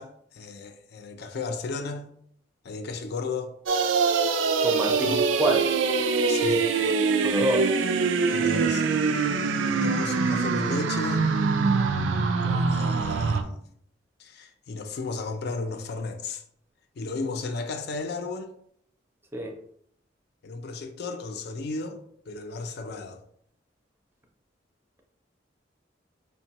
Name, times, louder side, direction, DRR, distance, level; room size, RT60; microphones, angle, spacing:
voice 1, 0.0-2.1 2.6-3.5 4.9-5.2 6.3-6.7 8.3-8.9 9.7-11.3 12.4-13.6 14.2-16.4 17.0-18.5 20.4-22.0 22.3-23.2, left 3 dB, 60° left, 0.4 m, -34 dB
sound 1, 3.7-13.4, right 4 dB, 90° right, 0.4 m, -24 dB
voice 2, 4.6-5.7 7.2-7.7 8.4-8.5 19.3-19.6, right 1 dB, 10° right, 0.5 m, -27 dB
5.2 x 2.2 x 2.8 m
head